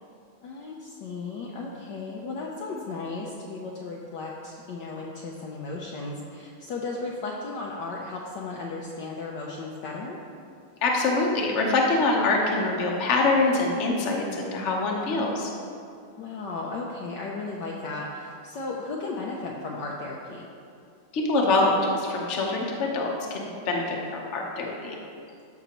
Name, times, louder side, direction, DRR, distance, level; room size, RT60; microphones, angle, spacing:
voice 1, 0.4-10.2 16.2-20.5, left 3 dB, 70° left, -2 dB, 1.1 m, -35 dB
voice 2, 10.8-15.5 21.1-25.0, left 3 dB, 45° left, -1 dB, 1.0 m, -24 dB
13.0 x 5.9 x 3.0 m, 2.4 s
omnidirectional pair, 2.4 m